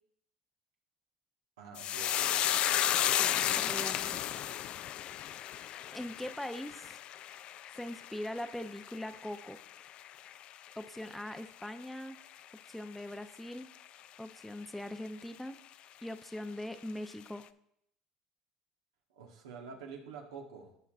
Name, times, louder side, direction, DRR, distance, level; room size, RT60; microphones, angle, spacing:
voice 1, 1.6-2.4 19.1-20.7, right 5 dB, 90° right, 2 dB, 1.4 m, -47 dB
sound 1, 1.8-10.4 10.7-11.3 11.6-11.8, left 11 dB, 50° left, 0.3 m, -33 dB
voice 2, 3.2-4.2 5.9-7.0 7.8-9.6 10.8-12.2 12.7-13.7 14.2-15.6 16.0-17.4, left 1 dB, 5° left, 9 dB, 0.6 m, -41 dB
15.5 x 5.7 x 2.5 m, 0.72 s
supercardioid pair, 95°, 2 cm